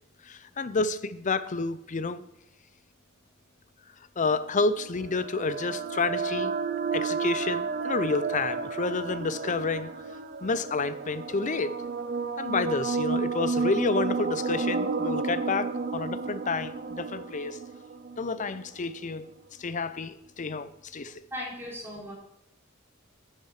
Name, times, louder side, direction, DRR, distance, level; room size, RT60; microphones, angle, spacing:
voice 1, 0.3-2.2 4.2-6.6 6.9-9.9 10.4-11.7 12.4-17.6 18.2-19.3 19.6-21.1, left 3 dB, 35° left, 13 dB, 0.6 m, -29 dB
sound 1, 4.6-18.7, right 4 dB, 45° right, 0.6 m, -32 dB
voice 2, 21.3-22.1, left 1 dB, 10° right, -5 dB, 3.4 m, -37 dB
10.5 x 7.4 x 4.8 m, 0.85 s
head